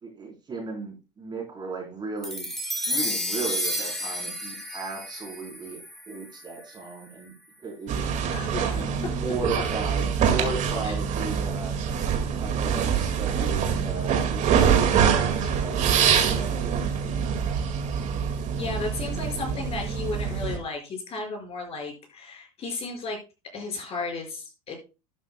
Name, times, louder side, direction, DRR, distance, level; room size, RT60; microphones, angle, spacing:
voice 1, 0.0-2.5 2.9-7.3 7.6-8.1 8.7-11.7 12.4-16.8, right 3 dB, 25° right, 0 dB, 3.9 m, -36 dB
sound 1, 2.2-6.8, left 1 dB, ahead, 3.7 m, -31 dB
sound 2, 7.9-20.6, right 7 dB, 40° right, 2.1 m, -25 dB
voice 2, 8.3-8.8 10.8-11.0 18.6-23.2 23.5-24.7, left 3 dB, 35° left, 2 dB, 5.4 m, -34 dB
11.5 x 11.0 x 2.3 m, 0.29 s
supercardioid pair, 130°, 19 cm